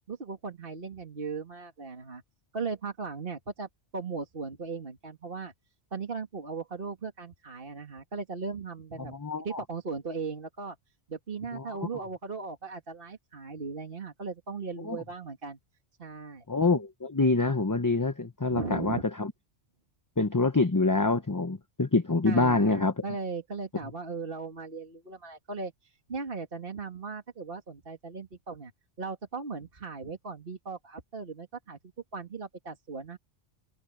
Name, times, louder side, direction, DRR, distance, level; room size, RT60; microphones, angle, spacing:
voice 1, 0.1-2.2 2.5-5.5 5.9-9.1 9.4-10.8 11.1-15.6 16.0-16.4 18.5-19.0 22.2-28.7 29.0-31.8 32.1-33.2, right 4 dB, 50° right, 2.3 m, -37 dB
voice 2, 9.0-9.6 11.5-12.0 14.8-15.0 16.5-19.3 20.2-22.9, left 3 dB, 20° left, 0.7 m, -26 dB
omnidirectional pair, 1.2 m